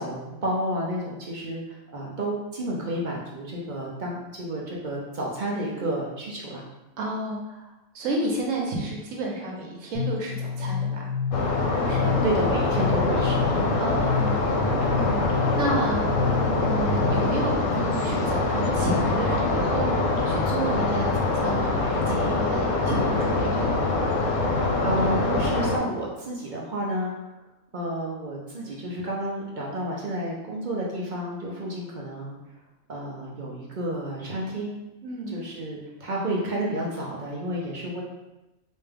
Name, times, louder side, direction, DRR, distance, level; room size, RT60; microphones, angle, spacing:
voice 1, 0.0-6.6 12.0-13.5 24.8-27.3 27.7-32.4 32.9-34.7 35.3-38.0, right 1 dB, 50° right, -3 dB, 0.6 m, -30 dB
voice 2, 7.0-7.6 7.9-11.1 11.9-12.2 13.8-16.1 16.6-20.0 20.3-23.8 35.0-35.4, right 2 dB, 80° right, -1 dB, 1.2 m, -31 dB
sound 1, 9.9-17.5, left 6 dB, 25° right, 1.2 m, -29 dB
sound 2, 11.3-25.8, left 2 dB, 80° left, 1.0 m, -24 dB
3.3 x 2.7 x 3.4 m, 0.99 s
omnidirectional pair, 1.3 m